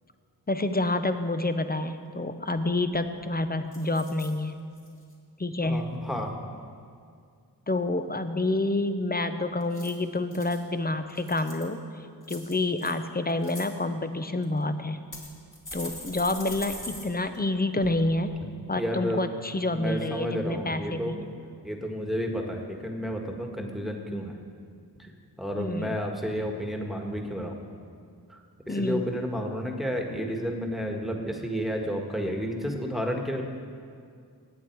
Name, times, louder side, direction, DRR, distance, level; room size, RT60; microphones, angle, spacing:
voice 1, 0.5-4.6 5.4-5.9 7.7-11.8 12.3-15.1 15.7-18.3 18.7-21.3 25.6-26.0 28.7-29.1, left 2 dB, 20° left, 9 dB, 0.8 m, -28 dB
sound 1, 2.9-3.3 3.7-4.3 4.8-5.1 9.6-10.6 11.1-11.7 12.2-12.9 13.3-13.7 14.4-14.5 15.1-17.0 17.3-17.4 17.8-17.9, left 1 dB, 50° left, 2.8 m, -42 dB
voice 2, 5.6-6.4 18.8-19.2 19.7-21.1 21.6-24.4 25.0-25.1 25.4-27.6 28.3-28.4 28.7-33.4, equal, ahead, 2 dB, 1.7 m, -31 dB
19.0 x 8.3 x 4.7 m, 2.2 s
cardioid pair, 45°, 41 cm